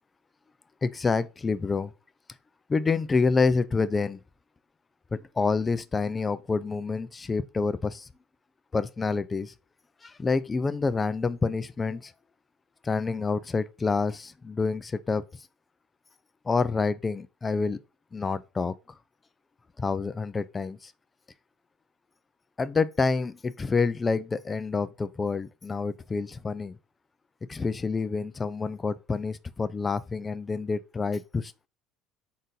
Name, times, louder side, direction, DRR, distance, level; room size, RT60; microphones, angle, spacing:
voice 1, 0.8-1.9 2.7-4.2 5.1-8.1 8.7-9.5 10.0-12.1 12.8-15.2 16.5-17.8 18.1-18.7 19.8-20.9 22.6-26.8 27.5-31.7, left 4 dB, 20° left, 0.3 m, -28 dB
4.0 x 2.6 x 3.7 m
supercardioid pair, 105°, 0 cm